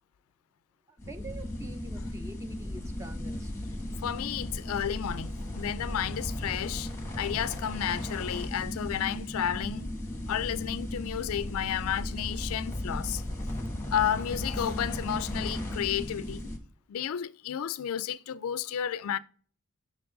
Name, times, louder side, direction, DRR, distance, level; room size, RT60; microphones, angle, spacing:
voice 1, 0.9-3.5, right 2 dB, 15° right, 0.5 m, -46 dB
sound 1, 1.0-16.6, left 1 dB, 10° left, 1.0 m, -36 dB
voice 2, 4.0-6.9 7.2-9.9 10.3-13.2 13.9-16.5 16.9-19.2, left 9 dB, 75° left, 0.3 m, -32 dB
5.8 x 4.6 x 3.8 m
head